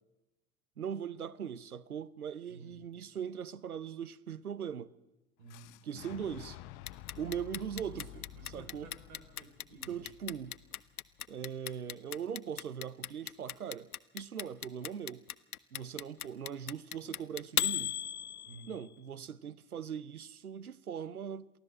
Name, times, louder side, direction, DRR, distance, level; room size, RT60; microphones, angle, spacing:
voice 1, 0.8-4.9 5.8-6.6 7.2-8.9 9.9-10.6 11.3-15.2 15.7-17.9 18.7-21.5, right 8 dB, 90° right, 0.7 m, -40 dB
voice 2, 2.5-2.8 5.4-5.8 7.9-10.1 18.4-18.8, right 3 dB, 65° right, 3.9 m, -54 dB
Boom, 5.5-11.4, left 13 dB, 55° left, 1.0 m, -51 dB
Clock, 6.9-18.8, left 10 dB, 85° left, 0.7 m, -36 dB
23.5 x 15.5 x 7.5 m
figure-of-eight pair, 70°, 43 cm